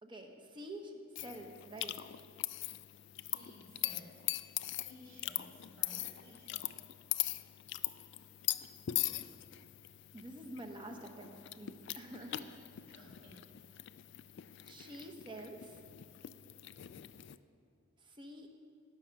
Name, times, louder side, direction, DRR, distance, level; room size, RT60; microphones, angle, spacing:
voice 1, 0.0-2.0 10.1-12.5 12.9-13.1 14.7-15.8 18.0-18.5, right 1 dB, 20° right, 4 dB, 0.9 m, -48 dB
sound 1, 1.2-17.4, left 15 dB, 55° left, 0.3 m, -41 dB
voice 2, 3.1-4.3 4.7-6.8 11.9-12.5 12.9-13.9, equal, 60° right, -3 dB, 3.4 m, -57 dB
17.5 x 6.3 x 5.9 m, 2.4 s
head